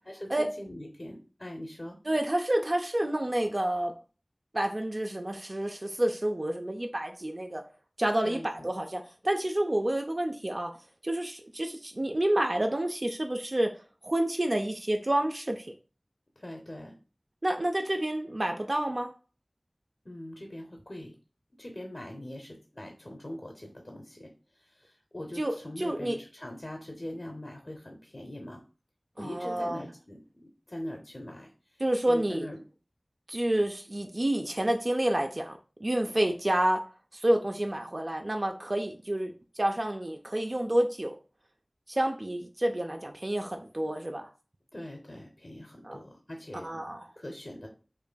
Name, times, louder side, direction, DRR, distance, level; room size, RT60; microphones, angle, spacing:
voice 1, 0.0-2.0 8.2-8.7 16.4-17.0 20.0-21.1 21.6-28.6 29.2-32.6 44.7-46.8 47.2-47.7, left 1 dB, 50° left, 0.6 m, -42 dB
voice 2, 2.1-3.9 4.5-7.6 8.0-10.7 11.0-13.7 14.0-15.7 17.4-19.1 25.4-26.2 29.2-29.8 31.8-32.5 33.3-36.8 37.1-41.2 41.9-44.3 45.8-46.0 46.6-47.1, right 1 dB, 50° right, 0.3 m, -29 dB
5.0 x 2.6 x 2.2 m
wide cardioid pair, 45°, 0 cm